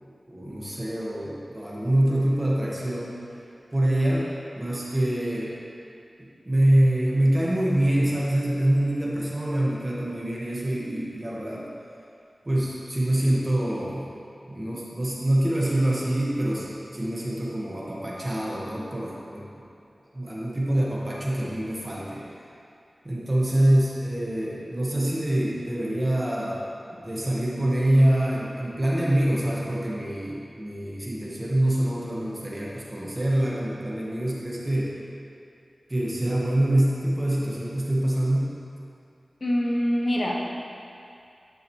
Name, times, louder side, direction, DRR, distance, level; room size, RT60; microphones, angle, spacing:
voice 1, 0.3-3.2 3.7-4.3 4.6-5.5 6.2-11.7 12.4-14.1 14.5-19.6 20.1-22.2 23.0-34.9 35.9-38.5, right 1 dB, 25° right, -6 dB, 1.6 m, -25 dB
voice 2, 39.4-40.4, equal, 50° left, -1 dB, 1.0 m, -24 dB
10.5 x 6.3 x 3.2 m, 2.5 s
wide cardioid pair, 80°, 0 cm